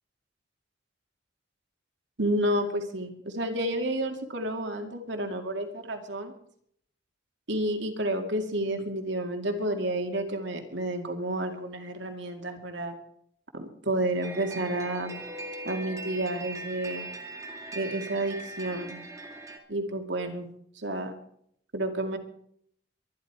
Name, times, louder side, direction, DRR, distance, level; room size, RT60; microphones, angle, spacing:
voice 1, 2.2-6.3 7.5-13.0 13.5-15.2 15.6-17.1 17.7-19.0 19.7-20.5 20.8-21.1 21.7-22.2, right 1 dB, 65° right, 4 dB, 2.3 m, -30 dB
sound 1, 14.2-19.6, right 2 dB, 15° right, 2.1 m, -40 dB
23.5 x 11.0 x 4.8 m, 0.70 s
head